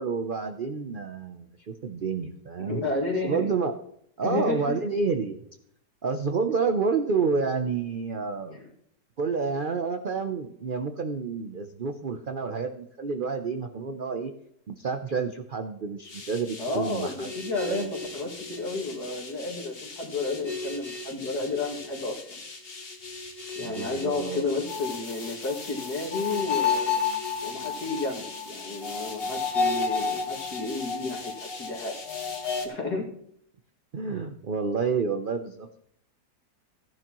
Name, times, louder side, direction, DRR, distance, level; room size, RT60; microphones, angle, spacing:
voice 1, 0.0-2.8 3.2-3.7 4.2-5.4 6.0-8.6 9.2-14.3 14.7-17.3 17.6-17.9 23.6-24.5 33.9-35.8, right 5 dB, 60° right, 6 dB, 0.5 m, -29 dB
voice 2, 2.6-3.5 4.2-4.7 8.5-8.7 16.6-17.9 18.1-22.4 23.6-26.9 27.4-31.9 32.6-33.1, left 3 dB, 70° left, -1 dB, 2.8 m, -32 dB
sound 1, 16.1-32.7, left 5 dB, 40° left, 1.4 m, -33 dB
14.5 x 10.5 x 3.0 m, 0.70 s
omnidirectional pair, 1.7 m